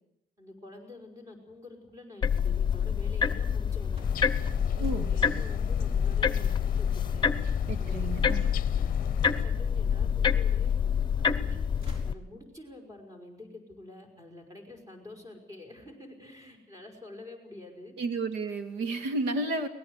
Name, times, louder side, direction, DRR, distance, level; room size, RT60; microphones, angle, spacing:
voice 1, 0.4-4.0 4.6-7.3 7.7-8.9 9.2-10.7 11.1-11.6 12.1-17.9, left 2 dB, 20° right, 4 dB, 5.8 m, -48 dB
sound 1, 2.2-12.1, left 7 dB, 25° left, 1.0 m, -27 dB
sound 2, 3.8-9.6 10.1-11.0 11.3-12.9, equal, 35° right, 4.9 m, -57 dB
sound 3, 4.0-9.5, left 11 dB, 55° left, 0.7 m, -43 dB
voice 2, 4.8-5.1 7.7-8.5 18.0-19.7, right 2 dB, 90° right, 9 dB, 2.3 m, -32 dB
23.5 x 18.5 x 8.2 m, 0.89 s
cardioid pair, 110°, 17 cm